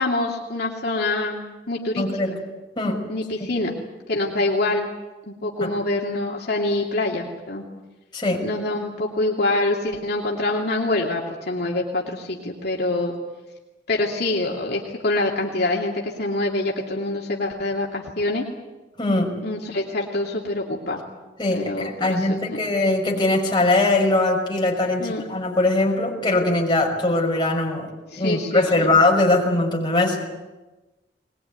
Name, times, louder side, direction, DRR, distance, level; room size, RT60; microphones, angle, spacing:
voice 1, 0.0-2.2 3.1-3.7 4.1-4.9 5.3-7.6 8.4-13.1 13.9-18.5 19.4-21.0 21.5-22.6 25.0-25.2 28.1-28.9, left 2 dB, 65° left, -2 dB, 2.8 m, -25 dB
voice 2, 2.0-2.3 2.8-3.0 3.4-3.5 5.6-5.7 8.1-8.4 19.0-19.3 21.4-27.9 28.2-30.3, left 2 dB, 25° left, -1 dB, 5.9 m, -21 dB
22.0 x 21.0 x 9.5 m, 1.1 s
head